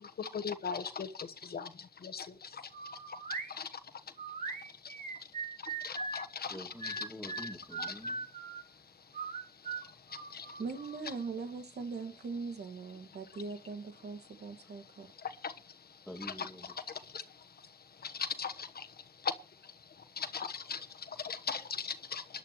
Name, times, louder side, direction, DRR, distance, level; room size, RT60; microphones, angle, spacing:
voice 1, 0.2-1.1 1.5-1.7 2.0-2.3 5.8-6.6 6.8-6.9 10.3-10.4 15.4-15.5 16.4-16.5 18.2-18.5 20.2-20.8 21.2-22.2, left 6 dB, 70° left, 1.2 m, -37 dB
sound 1, 2.7-3.5 4.2-6.3 6.8-8.6 9.1-11.0, right 4 dB, 50° right, 1.8 m, -40 dB
voice 2, 6.5-8.3 16.1-16.7, equal, ahead, 2.1 m, -47 dB
voice 3, 10.6-15.1, right 4 dB, 85° right, 1.8 m, -41 dB
25.0 x 11.0 x 3.0 m
wide cardioid pair, 100°, 17 cm